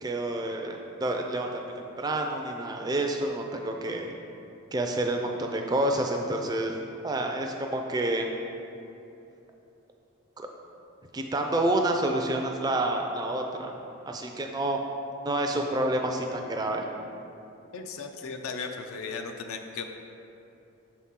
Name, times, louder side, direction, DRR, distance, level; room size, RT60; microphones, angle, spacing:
voice 1, 0.0-4.2 4.7-6.8 7.0-8.3 10.4-10.5 11.1-13.7 14.1-14.8 15.2-16.8, right 1 dB, 20° right, 2 dB, 0.3 m, -28 dB
voice 2, 17.7-19.8, left 4 dB, 70° left, 5 dB, 0.4 m, -36 dB
6.3 x 4.2 x 3.6 m, 2.8 s
head